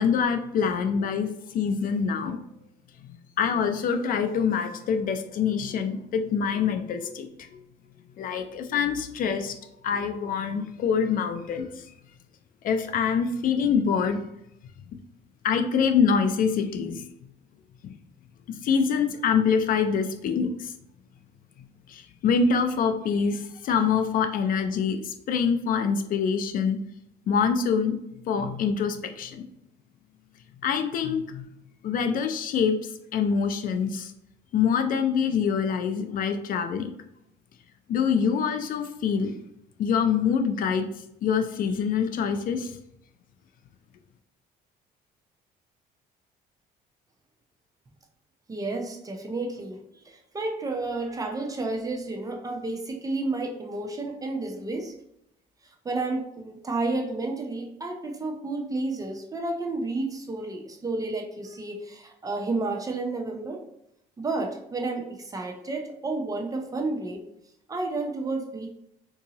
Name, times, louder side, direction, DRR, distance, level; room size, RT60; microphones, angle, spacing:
voice 1, 0.0-2.4 3.4-7.6 8.2-9.6 9.8-11.9 12.6-14.2 15.4-17.0 17.8-17.9 18.6-20.7 21.9-26.8 27.3-27.9 28.2-29.4 30.6-31.5 31.8-34.1 34.5-36.9 37.9-39.3 39.8-40.9 41.2-42.8, left 6 dB, 55° left, 8 dB, 0.4 m, -25 dB
voice 2, 48.5-54.9 55.6-63.6 64.2-67.2 67.7-68.7, right 2 dB, 20° right, 2 dB, 0.6 m, -31 dB
3.8 x 2.7 x 2.8 m, 0.79 s
cardioid pair, 110°, 17 cm